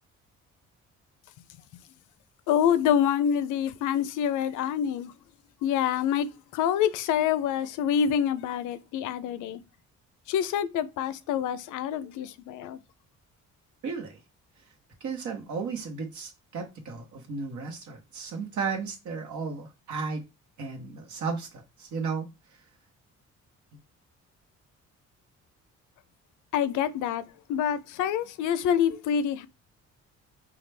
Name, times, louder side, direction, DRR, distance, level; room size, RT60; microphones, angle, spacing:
voice 1, 2.5-5.1 5.6-6.3 6.5-9.6 10.3-12.8 26.5-27.2 27.5-29.5, left 9 dB, 80° left, 0.5 m, -26 dB
voice 2, 13.8-14.2 15.0-20.2 20.6-22.3, right 5 dB, 75° right, 1.2 m, -34 dB
4.1 x 2.4 x 3.3 m
cardioid pair, 90°, 30 cm